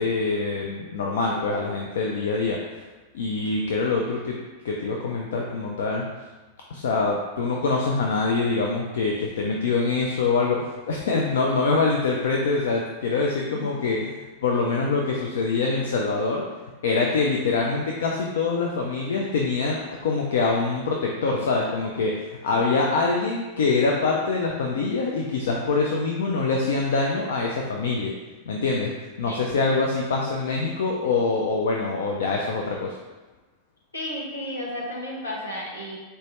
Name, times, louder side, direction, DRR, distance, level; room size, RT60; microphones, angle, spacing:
voice 1, 0.0-2.8 3.1-4.4 4.6-6.1 6.7-16.4 16.8-28.1 28.5-28.9 29.2-33.0, left 4 dB, 60° left, 0 dB, 0.3 m, -24 dB
voice 2, 33.9-36.0, left 1 dB, 75° left, -4 dB, 0.8 m, -33 dB
4.0 x 2.2 x 2.9 m, 1.2 s
figure-of-eight pair, 90°, 0 cm